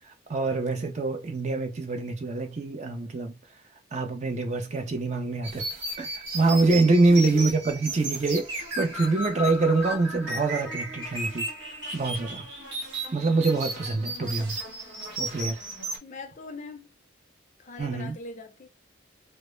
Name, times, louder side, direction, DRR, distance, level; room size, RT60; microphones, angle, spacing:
voice 1, 0.0-3.3 3.9-5.7 6.0-11.5 11.9-12.5 13.1-14.6 15.2-15.6 17.8-18.2, right 3 dB, 35° right, 0.4 m, -25 dB
sound 1, 5.4-16.0, right 1 dB, 90° right, 1.1 m, -35 dB
voice 2, 7.1-7.5 14.0-14.6 16.0-16.9 17.6-18.7, left 3 dB, 40° left, 0.5 m, -42 dB
2.1 x 2.0 x 3.0 m
head